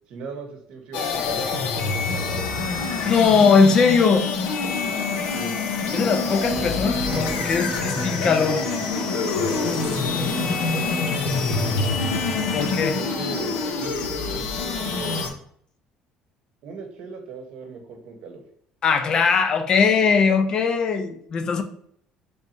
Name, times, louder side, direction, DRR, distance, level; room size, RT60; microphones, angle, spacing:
voice 1, 0.1-2.7 5.3-5.5 12.9-15.2 16.6-18.4, right 4 dB, 60° right, 5 dB, 0.8 m, -38 dB
sound 1, 0.9-15.3, left 4 dB, 85° left, 0.7 m, -26 dB
voice 2, 3.0-4.3 5.9-8.6 12.5-13.0 18.8-21.6, left 5 dB, 35° left, 8 dB, 0.4 m, -20 dB
Snare drum, 5.8-11.9, right 2 dB, 15° right, 0.6 m, -34 dB
3.3 x 2.7 x 4.3 m, 0.63 s
cardioid pair, 155°, 2 cm